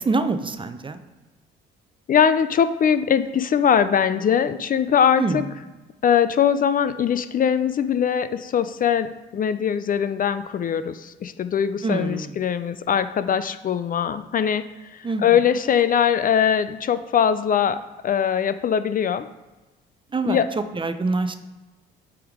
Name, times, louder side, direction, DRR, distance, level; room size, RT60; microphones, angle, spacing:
voice 1, 0.0-1.0 5.2-5.4 11.8-12.3 15.0-15.2 20.1-20.4 20.7-21.3, right 3 dB, 25° right, 9 dB, 0.7 m, -25 dB
voice 2, 2.1-5.5 6.0-14.6 14.9-19.3 20.2-20.5, left 8 dB, 45° left, 12 dB, 0.5 m, -21 dB
7.8 x 3.6 x 4.9 m, 1.1 s
supercardioid pair, 70°, 20 cm